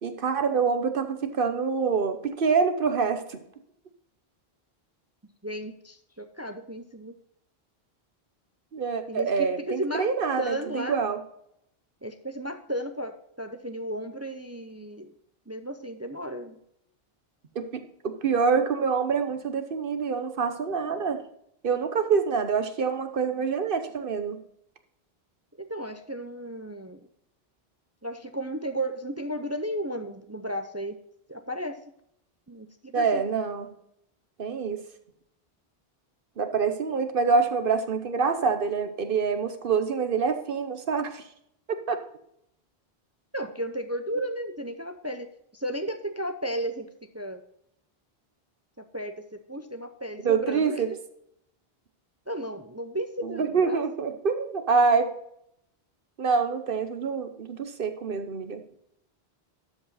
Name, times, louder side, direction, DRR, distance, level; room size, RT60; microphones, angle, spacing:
voice 1, 0.0-3.4 8.7-11.2 17.5-21.2 21.6-24.4 32.9-33.7 34.4-34.8 36.4-41.2 41.7-42.0 50.2-50.9 53.2-55.1 56.2-58.6, right 5 dB, 60° right, 8 dB, 1.0 m, -26 dB
voice 2, 5.4-7.2 9.1-10.1 10.4-11.0 12.0-15.1 15.5-16.6 25.6-27.1 28.0-31.0 31.3-31.8 32.5-33.2 43.3-47.4 48.8-50.8 52.3-53.8, right 1 dB, 20° right, 8 dB, 0.5 m, -34 dB
12.5 x 5.3 x 4.0 m, 0.75 s
omnidirectional pair, 1.0 m